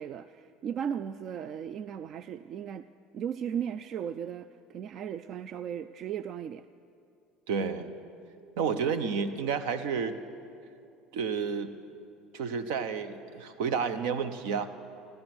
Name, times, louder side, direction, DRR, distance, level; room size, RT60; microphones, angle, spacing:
voice 1, 0.0-2.9 3.1-6.7, right 8 dB, 50° right, 13 dB, 0.3 m, -36 dB
voice 2, 7.5-7.9 8.6-10.2 11.1-11.7 12.3-14.7, right 6 dB, 80° right, 11 dB, 0.9 m, -30 dB
15.0 x 13.5 x 6.1 m, 2.6 s
supercardioid pair, 100°, 0 cm